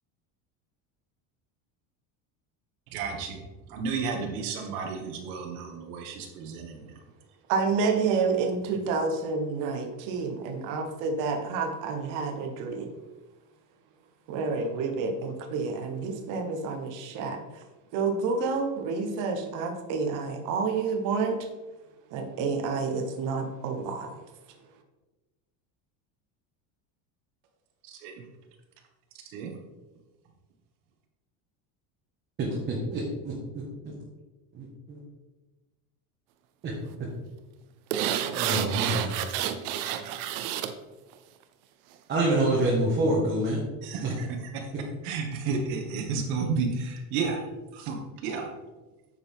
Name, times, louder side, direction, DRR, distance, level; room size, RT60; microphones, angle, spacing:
voice 1, 2.9-3.4 3.7-6.8 28.0-28.1 29.3-29.5 43.8-44.3 45.0-47.4 47.7-48.0 48.2-48.5, right 5 dB, 85° right, 2 dB, 2.1 m, -31 dB
voice 2, 7.5-12.9 14.3-17.4 17.9-21.5 22.1-24.1, right 4 dB, 45° right, 5 dB, 1.1 m, -29 dB
voice 3, 32.4-33.3 34.5-35.0 36.6-36.7 38.3-39.1 42.1-43.6 44.0-44.1, right 1 dB, 25° right, -4 dB, 1.4 m, -26 dB
sound 1, 37.9-40.7 41.1-41.2, right 10 dB, 60° right, 0.8 m, -29 dB
9.6 x 6.9 x 3.6 m, 1.1 s
cardioid pair, 180°, 43 cm